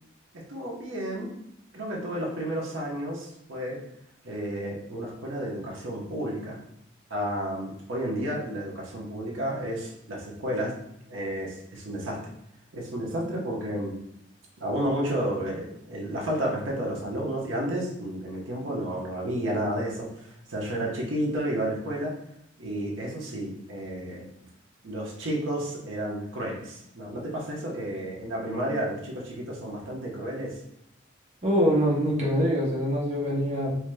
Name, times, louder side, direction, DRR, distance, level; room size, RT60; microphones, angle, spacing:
voice 1, 0.5-1.3 1.7-3.8 4.2-6.6 7.1-10.7 11.1-12.2 12.7-14.0 14.6-20.1 20.5-22.1 22.6-24.2 24.8-30.6, right 1 dB, 75° right, -2 dB, 1.0 m, -31 dB
voice 2, 31.4-33.8, equal, 35° right, -5 dB, 0.8 m, -24 dB
4.6 x 2.9 x 2.2 m, 0.81 s
head